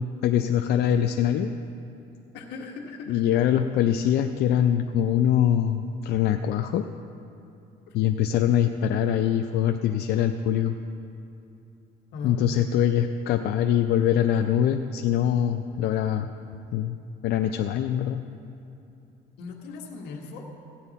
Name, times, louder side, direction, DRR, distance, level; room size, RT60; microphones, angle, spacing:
voice 1, 0.0-1.5 3.1-6.8 7.9-10.8 12.2-16.3 16.7-17.0 17.2-18.2, left 10 dB, 70° left, 6 dB, 0.5 m, -23 dB
voice 2, 2.3-3.2 7.9-8.0 12.1-12.4 19.4-20.5, left 4 dB, 90° left, 0 dB, 1.6 m, -38 dB
15.5 x 9.8 x 4.1 m, 2.8 s
cardioid pair, 110°, 17 cm